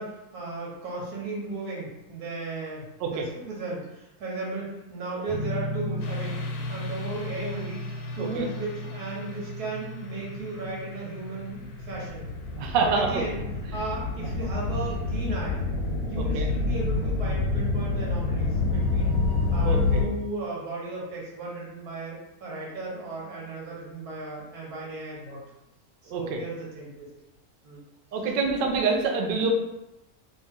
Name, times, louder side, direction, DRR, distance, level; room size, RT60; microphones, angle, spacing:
voice 1, 0.0-7.8 8.1-12.3 12.8-13.4 13.7-15.6 16.1-19.1 19.5-25.4 26.0-27.1 27.6-27.8, right 2 dB, 90° right, -4 dB, 1.6 m, -35 dB
sound 1, 5.3-12.8, left 1 dB, 15° right, 0.8 m, -36 dB
sound 2, 6.0-20.0, left 3 dB, 90° left, 1.1 m, -29 dB
voice 2, 12.6-13.2 16.2-16.5 19.6-20.1 26.1-26.4 28.1-29.5, right 4 dB, 70° right, 2 dB, 0.5 m, -26 dB
2.9 x 2.7 x 3.5 m, 0.92 s
omnidirectional pair, 1.6 m